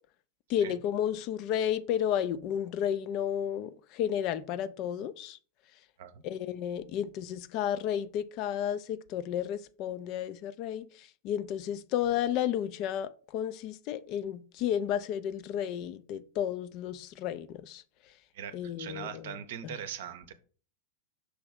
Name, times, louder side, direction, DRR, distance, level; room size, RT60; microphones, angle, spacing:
voice 1, 0.5-5.4 6.2-17.8 18.5-19.8, left 10 dB, 40° left, 0.4 m, -32 dB
voice 2, 18.3-20.3, right 9 dB, 55° right, 0.6 m, -41 dB
6.2 x 3.0 x 4.9 m
figure-of-eight pair, 90°, 0 cm